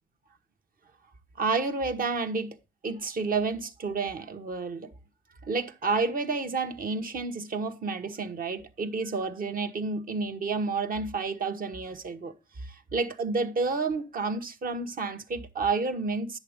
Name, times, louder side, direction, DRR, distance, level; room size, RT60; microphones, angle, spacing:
voice 1, 1.4-2.6 2.8-4.9 5.4-16.4, right 4 dB, 45° right, 1.3 m, -30 dB
10.5 x 7.2 x 3.6 m
cardioid pair, 90°, 20 cm